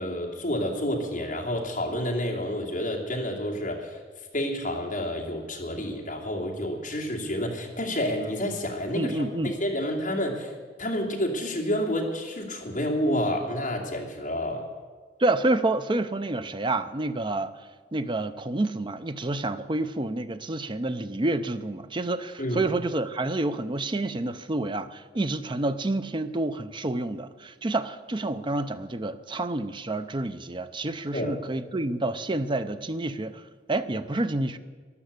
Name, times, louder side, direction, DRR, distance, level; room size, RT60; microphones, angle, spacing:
voice 1, 0.0-4.0 4.3-10.5 10.8-14.7 22.4-22.7 31.1-31.4, equal, 45° left, -1 dB, 2.6 m, -29 dB
voice 2, 8.9-9.5 15.2-17.5 17.9-33.4 33.7-34.6, right 2 dB, 30° right, 11 dB, 0.6 m, -28 dB
13.0 x 11.5 x 8.2 m, 1.5 s
head